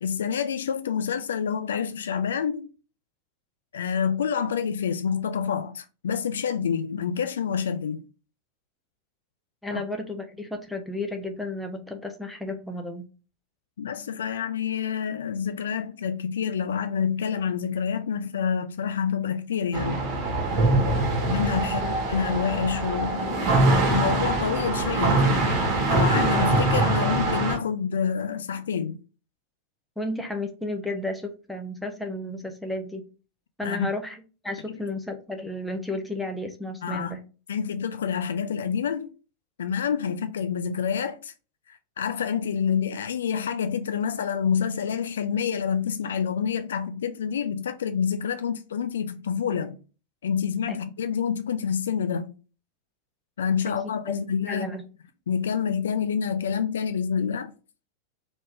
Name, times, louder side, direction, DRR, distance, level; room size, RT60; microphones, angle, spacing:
voice 1, 0.0-2.7 3.7-8.0 9.7-9.8 13.8-20.1 21.3-23.4 23.9-25.3 25.9-29.0 33.6-33.9 36.8-37.2 37.5-39.1 39.6-41.3 41.7-49.8 50.2-52.3 53.4-54.8 55.3-57.5, left 7 dB, 65° left, 0.3 m, -27 dB
voice 2, 9.6-13.1 21.6-21.9 30.0-33.0 33.6-37.2 50.7-50.8 53.7-53.8 54.5-54.8, left 2 dB, 5° left, 0.7 m, -33 dB
sound 1, 19.7-27.6, right 2 dB, 35° right, 1.3 m, -23 dB
3.4 x 2.6 x 3.2 m
figure-of-eight pair, 90°, 0 cm